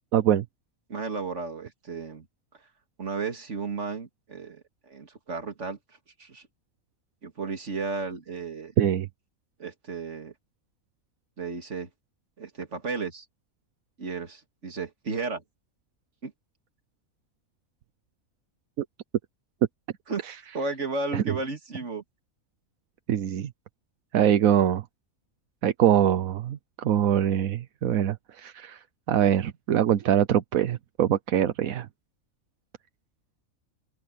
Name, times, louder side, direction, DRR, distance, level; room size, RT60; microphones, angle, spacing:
voice 1, 0.1-0.4 8.8-9.1 18.8-18.9 20.3-20.4 21.1-21.4 23.1-23.5 24.1-24.8 25.6-28.8 29.1-31.9, right 10 dB, 85° right, 1.3 m, -23 dB
voice 2, 0.9-2.3 3.0-5.8 6.2-6.5 7.2-8.7 9.6-10.3 11.4-11.9 12.4-13.2 14.0-15.4 16.2-16.3 20.1-20.2 20.5-22.0, right 4 dB, 60° right, 2.6 m, -33 dB
open air
omnidirectional pair, 1.4 m